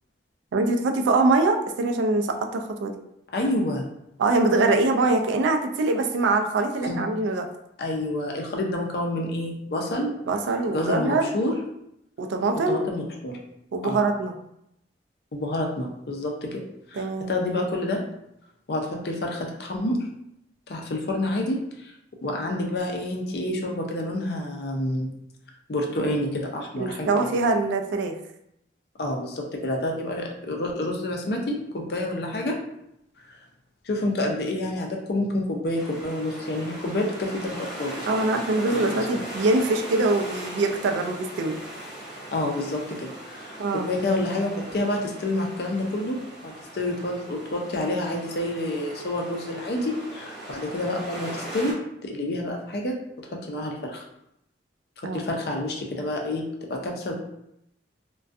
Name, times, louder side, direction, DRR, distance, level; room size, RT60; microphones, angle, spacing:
voice 1, 0.5-2.9 4.2-7.5 10.3-11.3 12.2-12.8 13.7-14.3 16.9-17.3 26.8-28.2 38.1-41.6 43.6-43.9 55.0-55.2, right 3 dB, 90° right, 5 dB, 0.3 m, -23 dB
voice 2, 3.3-3.9 6.8-7.0 7.8-10.2 10.7-11.5 12.7-13.4 13.8-14.0 15.3-16.6 16.9-18.0 18.7-20.1 20.7-21.9 22.2-25.1 25.7-27.1 29.0-32.6 33.9-38.1 38.7-39.2 42.3-46.2 46.4-54.0 55.1-56.4 56.7-57.1, left 1 dB, 60° left, 1 dB, 0.4 m, -28 dB
sound 1, 35.7-51.7, right 1 dB, ahead, 0.9 m, -39 dB
2.3 x 2.2 x 2.5 m, 0.80 s
head